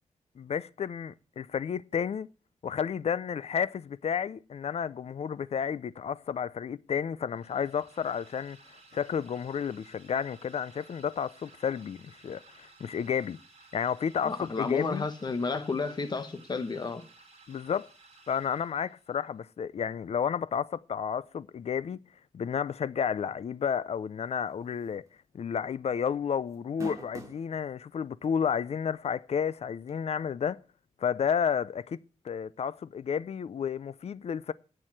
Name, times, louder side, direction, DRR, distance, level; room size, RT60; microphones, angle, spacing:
voice 1, 0.4-2.3 2.6-8.6 8.9-13.4 13.7-15.1 17.5-17.9 18.3-22.0 22.3-25.0 25.3-30.6 31.0-32.0 32.2-34.5, left 7 dB, 60° left, 0.5 m, -31 dB
sound 1, 7.3-19.2, right 3 dB, 60° right, 3.8 m, -57 dB
voice 2, 14.2-17.0, left 4 dB, 35° left, 1.2 m, -32 dB
sound 2, 24.8-25.1 25.4-25.5 26.5-27.5 28.2-28.3 29.9-30.0, right 2 dB, 25° right, 2.4 m, -41 dB
8.4 x 7.6 x 8.9 m
wide cardioid pair, 155°, 12 cm